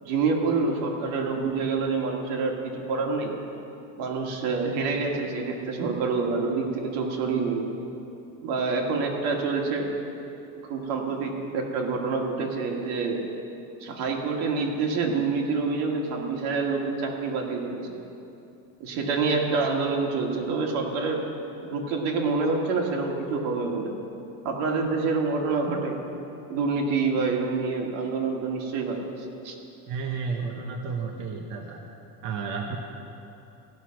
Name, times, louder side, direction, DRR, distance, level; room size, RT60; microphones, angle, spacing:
voice 1, 0.0-3.4 4.0-7.7 8.4-9.9 10.7-13.2 13.8-17.9 18.8-21.3 21.6-24.0 24.4-26.0 26.5-29.0 29.4-29.6, right 4 dB, 80° right, 1 dB, 1.9 m, -27 dB
voice 2, 29.9-31.8 32.2-32.8, right 5 dB, 50° right, 1 dB, 0.9 m, -32 dB
16.5 x 5.9 x 6.4 m, 2.8 s
cardioid pair, 170°, 40 cm